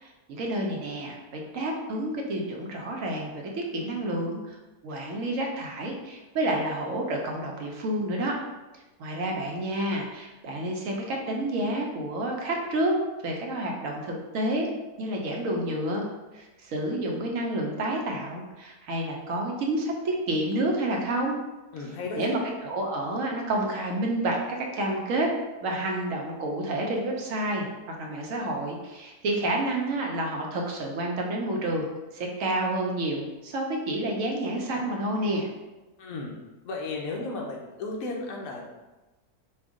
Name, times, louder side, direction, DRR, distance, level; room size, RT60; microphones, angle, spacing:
voice 1, 0.0-4.6 4.8-8.4 9.0-12.9 13.2-14.7 15.0-16.1 16.3-21.4 22.2-25.3 25.6-27.7 28.0-31.9 32.1-35.5, right 1 dB, 65° right, 0 dB, 1.0 m, -29 dB
voice 2, 21.7-22.4 36.0-36.3 36.6-38.6, left 3 dB, 70° left, -1 dB, 1.1 m, -34 dB
4.4 x 2.3 x 3.6 m, 1.1 s
omnidirectional pair, 1.6 m